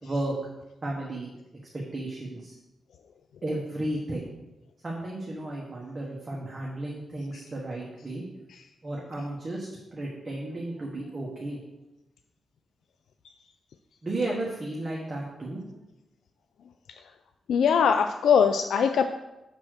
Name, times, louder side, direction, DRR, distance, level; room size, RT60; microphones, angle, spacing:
voice 1, 0.0-0.3 0.8-1.3 1.9-2.6 3.4-4.3 4.8-8.2 8.8-11.6 14.0-15.6, right 1 dB, 25° right, -4 dB, 1.3 m, -33 dB
voice 2, 17.5-19.0, left 7 dB, 80° left, 8 dB, 0.3 m, -21 dB
6.2 x 4.2 x 6.4 m, 0.97 s
wide cardioid pair, 130°, 0 cm